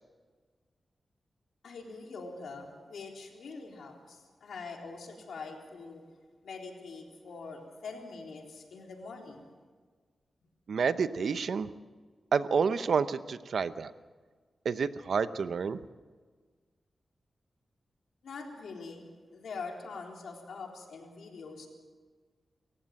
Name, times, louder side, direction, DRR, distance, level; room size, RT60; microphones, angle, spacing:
voice 1, 1.6-6.1 6.4-9.5 18.2-21.7, left 4 dB, 85° left, 1 dB, 3.8 m, -44 dB
voice 2, 10.7-11.7 12.3-13.9 14.6-15.8, right 5 dB, 75° right, 13 dB, 0.8 m, -29 dB
28.0 x 15.0 x 7.7 m, 1.5 s
cardioid pair, 75°, 0 cm